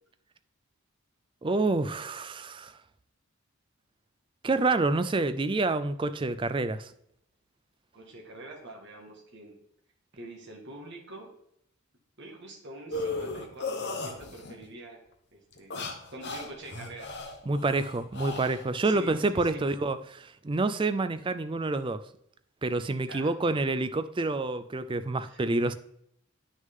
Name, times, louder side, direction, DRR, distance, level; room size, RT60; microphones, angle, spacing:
voice 1, 1.4-2.7 4.4-6.9 17.5-22.0 22.6-25.7, right 3 dB, 20° right, 0.3 m, -28 dB
voice 2, 7.9-9.6 10.1-11.3 12.2-15.0 15.3-15.7 16.1-17.1 18.8-19.6 23.1-23.3 25.2-25.4, right 2 dB, 50° right, 1.8 m, -45 dB
sound 1, 12.9-14.6 15.5-19.2, left 3 dB, 50° left, 1.0 m, -36 dB
9.3 x 6.4 x 3.6 m
head